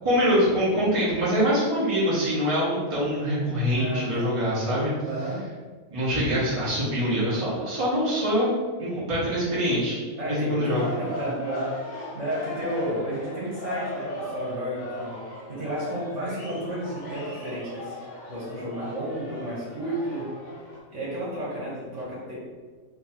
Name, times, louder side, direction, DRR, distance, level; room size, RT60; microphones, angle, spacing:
voice 1, 0.0-4.9 5.9-8.5 8.8-10.9, equal, 25° right, -9 dB, 1.4 m, -24 dB
voice 2, 3.7-4.3 5.1-5.5 10.2-15.2 15.5-18.0 18.3-20.3 20.9-22.3, right 1 dB, 60° right, -8 dB, 1.8 m, -32 dB
sound 1, 10.6-20.8, left 1 dB, 60° left, 1.4 m, -37 dB
3.4 x 3.2 x 4.3 m, 1.4 s
omnidirectional pair, 1.4 m